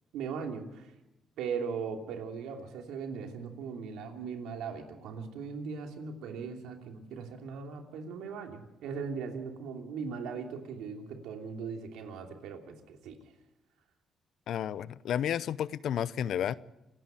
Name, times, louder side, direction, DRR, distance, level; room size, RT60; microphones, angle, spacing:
voice 1, 0.1-0.9 1.4-13.2, right 5 dB, 90° right, 3 dB, 3.0 m, -39 dB
voice 2, 14.5-16.5, left 9 dB, 70° left, 18 dB, 0.7 m, -31 dB
28.0 x 10.0 x 9.1 m, 0.95 s
cardioid pair, 90°, 0 cm